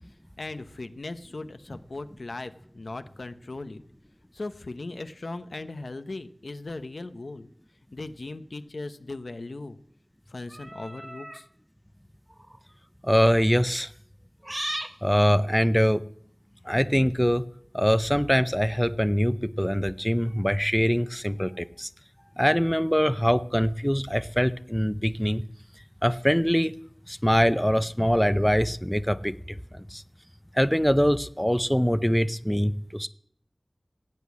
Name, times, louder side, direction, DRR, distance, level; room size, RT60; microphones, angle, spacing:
voice 1, 0.4-3.8 4.3-7.5 7.9-9.8 10.3-11.5, left 2 dB, 80° left, 10 dB, 0.9 m, -38 dB
sound 1, 10.5-11.4 12.3-12.6 14.4-15.0, right 1 dB, 25° right, 1.0 m, -35 dB
voice 2, 13.0-13.9 15.0-16.1 16.7-17.5 17.7-21.9 22.4-25.4 26.0-26.7 27.1-29.6 29.9-30.0 30.6-33.1, equal, 5° left, 14 dB, 0.6 m, -23 dB
16.5 x 8.3 x 8.4 m, 0.67 s
wide cardioid pair, 40°, 0 cm